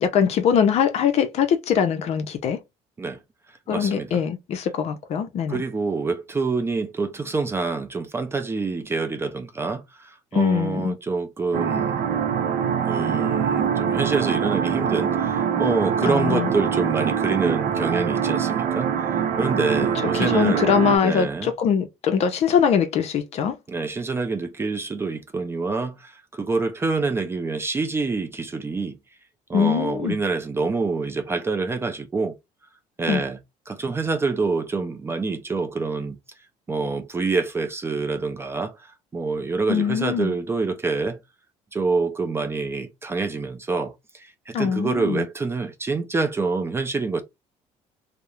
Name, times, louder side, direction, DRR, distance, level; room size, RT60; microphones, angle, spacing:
voice 1, 0.0-2.6 3.7-5.6 10.3-10.9 16.1-16.5 20.1-23.6 29.5-30.2 33.1-33.2 39.7-40.3 44.5-45.2, left 7 dB, 50° left, 0.5 m, -22 dB
voice 2, 3.7-4.2 5.5-12.0 12.8-18.9 19.4-20.7 21.0-21.5 23.7-29.0 29.5-32.3 33.0-33.4 33.7-36.2 36.7-41.2 41.7-47.2, right 4 dB, 20° right, 0.4 m, -26 dB
sound 1, 11.5-21.0, right 8 dB, 75° right, 0.6 m, -24 dB
2.3 x 2.0 x 2.9 m
cardioid pair, 120°, 13 cm